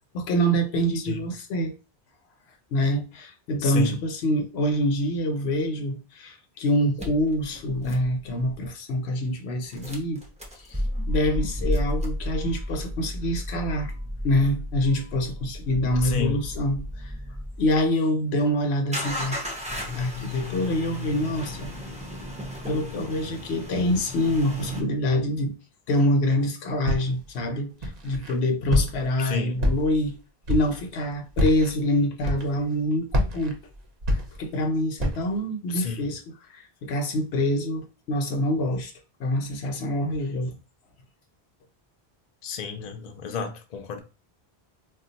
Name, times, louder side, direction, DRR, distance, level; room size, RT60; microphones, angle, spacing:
voice 1, 0.1-1.7 2.7-10.2 10.6-13.9 14.2-17.1 17.6-19.4 19.9-21.7 22.7-25.6 25.9-30.2 30.5-33.6 34.1-36.2 36.5-38.9 39.2-40.6, left 1 dB, 80° left, 0.9 m, -26 dB
voice 2, 3.6-4.0 16.0-16.4 29.2-29.6 35.7-36.1 42.4-44.0, left 6 dB, 50° left, 0.6 m, -31 dB
sound 1, 7.0-8.7 9.7-17.9 18.9-24.8, left 1 dB, 10° right, 0.5 m, -33 dB
Walk footsteps, 26.9-27.3 27.8-28.3 28.7-29.2 29.6-30.1 30.4-30.8 31.3-31.7 32.2-32.7 33.1-34.6 35.0-35.4, left 1 dB, 45° right, 0.6 m, -26 dB
2.3 x 2.2 x 3.8 m
omnidirectional pair, 1.1 m